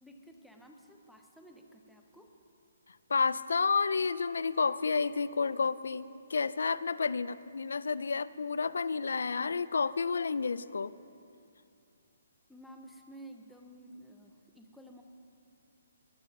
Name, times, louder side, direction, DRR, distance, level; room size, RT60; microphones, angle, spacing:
voice 1, 0.0-2.4 12.5-15.0, right 1 dB, ahead, 2 dB, 0.5 m, -53 dB
voice 2, 2.9-10.9, left 5 dB, 85° left, 16 dB, 0.3 m, -30 dB
20.5 x 7.4 x 5.3 m, 2.5 s
hypercardioid pair, 180°, 0 cm